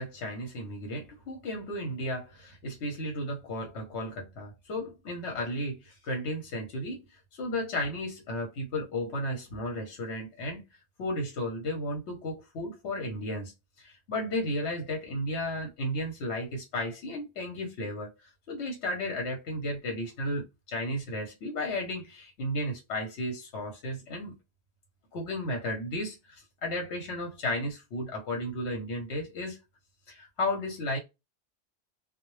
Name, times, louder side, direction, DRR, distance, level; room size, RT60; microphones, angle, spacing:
voice 1, 0.0-7.0 7.4-10.6 11.0-13.5 13.8-18.1 18.5-24.4 25.1-29.6 30.1-31.0, left 1 dB, 80° left, 1.0 m, -34 dB
2.1 x 2.0 x 3.0 m
omnidirectional pair, 1.1 m